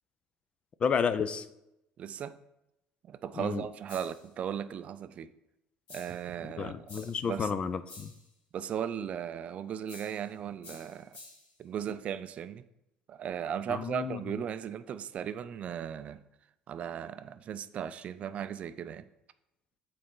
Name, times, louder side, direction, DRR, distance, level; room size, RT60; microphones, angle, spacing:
voice 1, 0.8-1.4 3.4-3.6 6.6-8.1 13.7-14.2, left 6 dB, 35° left, 0.4 m, -31 dB
voice 2, 2.0-2.4 3.1-5.3 5.9-6.8 7.2-7.6 8.5-11.2 11.6-12.6 13.1-16.2 16.7-19.1, right 8 dB, 45° right, 0.4 m, -37 dB
sound 1, 3.9-4.3 5.9-6.3 6.9-7.3 7.9-8.3 9.9-10.3 10.6-11.5, left 3 dB, 70° left, 2.1 m, -51 dB
7.7 x 4.1 x 3.8 m
cardioid pair, 115°, 3 cm